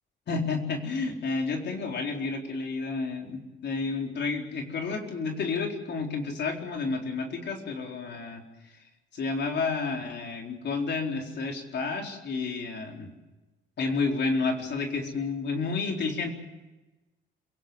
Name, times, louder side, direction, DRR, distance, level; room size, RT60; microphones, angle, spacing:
voice 1, 0.3-8.4 9.1-13.1 13.8-16.3, left 4 dB, 60° left, 2 dB, 4.2 m, -30 dB
27.0 x 17.5 x 7.9 m, 1.1 s
cardioid pair, 90°, 20 cm